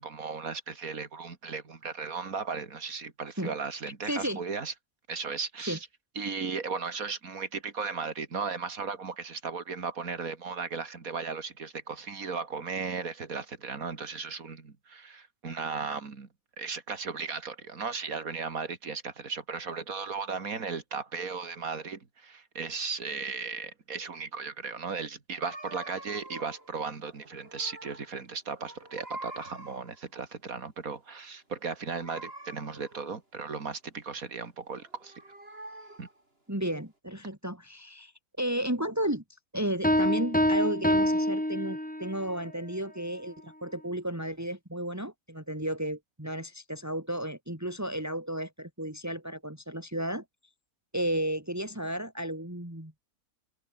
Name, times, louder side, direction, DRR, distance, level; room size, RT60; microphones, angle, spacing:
voice 1, 0.0-4.7 5.1-5.8 6.2-16.3 16.6-35.1 36.0-36.1, right 5 dB, 65° right, 2.9 m, -36 dB
voice 2, 4.1-4.4 5.7-5.8 36.5-38.1 38.4-39.2 39.5-50.2 50.9-52.9, right 1 dB, 10° right, 3.7 m, -33 dB
sound 1, 25.4-26.7 27.1-28.2 28.5-30.0 32.0-33.1 34.7-36.2, right 1 dB, 40° right, 6.3 m, -45 dB
sound 2, 39.8-42.2, equal, 5° left, 2.7 m, -26 dB
omnidirectional pair, 1.6 m